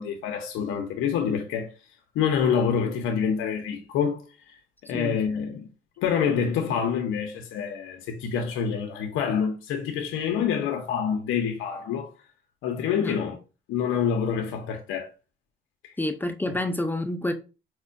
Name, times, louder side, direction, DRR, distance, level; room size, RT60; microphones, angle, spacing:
voice 1, 0.0-1.7 2.1-4.6 4.8-5.7 6.0-12.1 12.6-13.4 13.7-15.1 15.8-15.9, left 7 dB, 90° left, 0.5 m, -27 dB
voice 2, 16.0-17.3, left 1 dB, 10° left, 0.4 m, -28 dB
4.4 x 2.1 x 2.5 m
cardioid pair, 90°, 20 cm